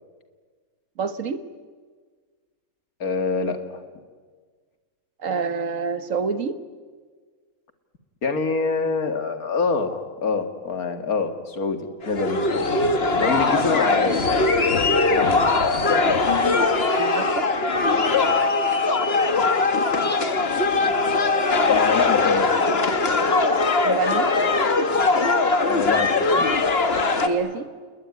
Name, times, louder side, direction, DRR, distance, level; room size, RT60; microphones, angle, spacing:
voice 1, 1.0-1.4 5.2-6.6 16.0-16.2 16.9-17.5 23.8-24.3 27.2-27.7, right 5 dB, 60° right, 12 dB, 1.7 m, -27 dB
voice 2, 3.0-3.8 8.2-12.7 13.2-14.3 15.1-15.6 20.8-20.9 21.7-22.5 25.7-26.5, left 4 dB, 75° left, 8 dB, 2.4 m, -26 dB
sound 1, 12.0-27.3, left 3 dB, 45° left, 1.8 m, -20 dB
29.0 x 20.5 x 9.7 m, 1.5 s
omnidirectional pair, 1.6 m